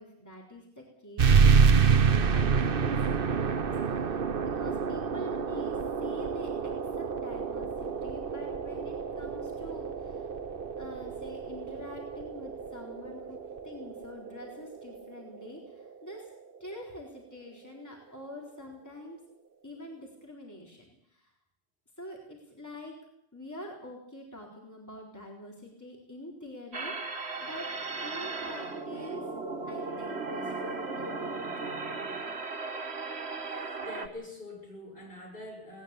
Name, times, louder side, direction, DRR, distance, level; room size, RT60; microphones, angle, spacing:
voice 1, 0.0-10.3 10.8-13.4 13.6-16.3 16.6-19.2 19.6-20.8 21.1-21.3 22.0-23.0 23.3-29.3 29.6-31.4, left 1 dB, 15° left, -1 dB, 4.0 m, -46 dB
sound 1, 1.2-16.3, right 6 dB, 60° right, 1.2 m, -28 dB
sound 2, 26.7-34.1, right 3 dB, 75° right, 1.9 m, -36 dB
voice 2, 33.8-35.8, left 1 dB, 55° left, -1 dB, 7.5 m, -44 dB
19.0 x 19.0 x 8.5 m, 0.72 s
omnidirectional pair, 1.1 m